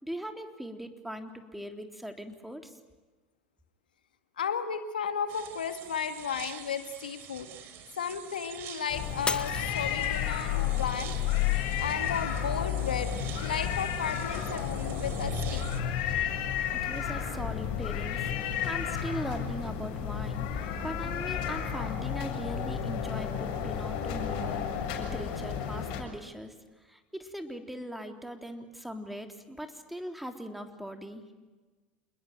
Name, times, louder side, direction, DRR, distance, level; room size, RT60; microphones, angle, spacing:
voice 1, 0.0-2.8 16.7-24.6 25.0-26.5 26.8-31.2, equal, 5° right, 5 dB, 3.5 m, -40 dB
voice 2, 4.4-7.5 7.9-11.1 11.8-13.1 13.4-15.6, left 7 dB, 85° left, 8 dB, 2.0 m, -34 dB
sound 1, 5.3-15.8, right 10 dB, 55° right, 3.7 m, -47 dB
sound 2, 8.9-26.0, left 8 dB, 60° left, 6.8 m, -32 dB
Shatter, 9.3-10.5 11.1-11.5 12.1-12.2, left 4 dB, 20° left, 1.5 m, -35 dB
28.0 x 21.0 x 9.2 m, 1.3 s
hypercardioid pair, 80°, 5 cm